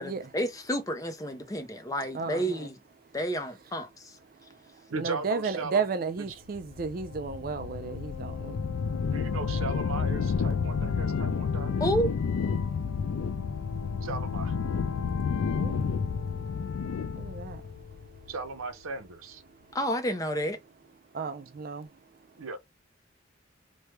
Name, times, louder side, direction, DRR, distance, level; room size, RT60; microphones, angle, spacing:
voice 1, 0.0-2.8 3.1-4.2 11.8-12.1 19.7-20.6, equal, 15° left, 0.5 m, -30 dB
voice 2, 2.1-2.7 5.0-8.6 15.6-15.8 17.2-17.6 21.1-21.9, right 5 dB, 45° right, 0.3 m, -33 dB
voice 3, 4.9-5.8 6.2-6.3 9.1-11.9 14.0-14.6 18.3-19.4 22.4-22.6, right 3 dB, 80° right, 0.7 m, -37 dB
sound 1, 6.6-18.6, left 5 dB, 85° left, 0.4 m, -30 dB
3.1 x 2.2 x 3.1 m
head